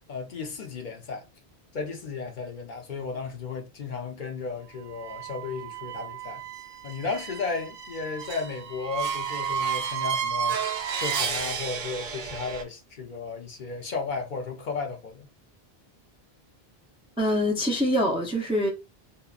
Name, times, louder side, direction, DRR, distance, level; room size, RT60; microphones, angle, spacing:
voice 1, 0.1-1.2 1.7-6.4 6.8-15.3, left 4 dB, 55° left, 0.7 m, -34 dB
sound 1, 4.9-12.6, right 7 dB, 60° right, 0.6 m, -32 dB
voice 2, 17.2-18.7, equal, 10° right, 0.4 m, -24 dB
2.8 x 2.1 x 2.3 m
omnidirectional pair, 1.0 m